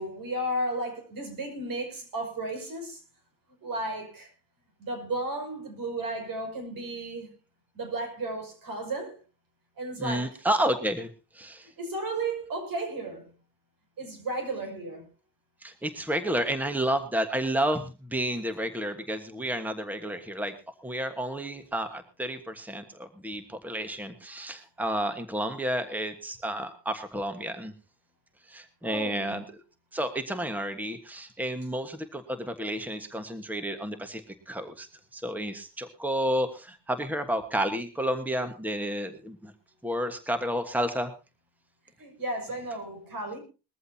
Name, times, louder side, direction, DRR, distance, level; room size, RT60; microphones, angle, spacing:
voice 1, 0.0-3.0 3.6-4.3 4.8-7.3 7.7-9.2 9.8-10.4 11.6-13.3 14.0-15.1 28.8-29.4 42.0-43.4, right 2 dB, 70° right, 6.2 m, -34 dB
voice 2, 10.0-11.1 11.3-11.7 15.6-20.5 20.8-27.7 28.5-29.4 29.9-34.9 35.1-39.5 39.8-41.1, right 1 dB, 5° right, 1.4 m, -31 dB
21.0 x 14.0 x 2.8 m
cardioid pair, 105°, 35 cm